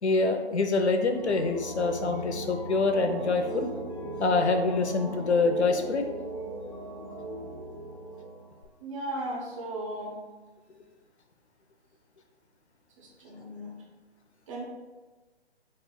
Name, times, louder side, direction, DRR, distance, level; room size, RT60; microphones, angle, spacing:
voice 1, 0.0-3.7 4.2-6.1, left 3 dB, 80° left, 5 dB, 0.7 m, -25 dB
sound 1, 1.1-8.6, right 1 dB, 40° left, 1.4 m, -38 dB
voice 2, 8.8-10.2 13.0-13.8 14.5-14.6, right 1 dB, 30° right, -2 dB, 0.7 m, -36 dB
5.3 x 4.2 x 2.2 m, 1.3 s
figure-of-eight pair, 140°, 33 cm